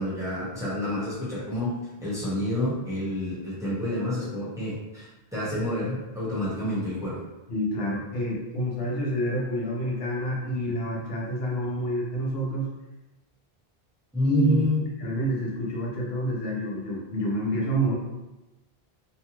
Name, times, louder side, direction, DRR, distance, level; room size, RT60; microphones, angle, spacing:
voice 1, 0.0-1.7 2.0-7.2 14.1-14.9, left 1 dB, 5° right, -9 dB, 0.8 m, -28 dB
voice 2, 7.5-12.7 14.2-14.6 15.0-17.9, right 1 dB, 70° left, -4 dB, 0.9 m, -28 dB
2.7 x 2.2 x 2.9 m, 1.0 s
omnidirectional pair, 1.0 m